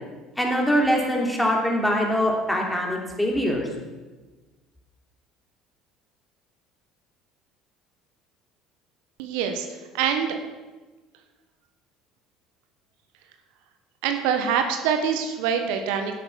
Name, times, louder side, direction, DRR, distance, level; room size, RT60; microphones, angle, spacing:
voice 1, 0.4-3.7, equal, 5° left, 0 dB, 3.2 m, -23 dB
voice 2, 9.2-10.3 14.0-16.2, right 7 dB, 75° right, 6 dB, 1.1 m, -25 dB
10.5 x 7.8 x 6.2 m, 1.2 s
hypercardioid pair, 75°, 0 cm